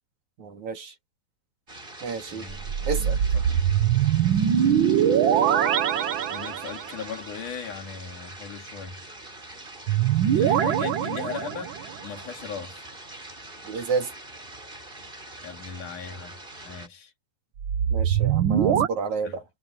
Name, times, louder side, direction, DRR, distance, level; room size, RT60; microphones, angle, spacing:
voice 1, 0.4-0.9 2.0-2.5 2.9-3.2 13.7-14.1 17.9-19.5, right 5 dB, 60° right, 4.2 m, -30 dB
sound 1, 1.7-16.9, right 2 dB, 15° right, 4.5 m, -44 dB
voice 2, 2.3-3.6 6.3-9.0 10.3-11.8 12.0-12.9 15.4-17.1 19.2-19.4, left 6 dB, 65° left, 4.9 m, -38 dB
sound 2, 2.5-7.0 9.9-12.0 17.6-18.9, right 9 dB, 80° right, 1.1 m, -23 dB
omnidirectional pair, 3.9 m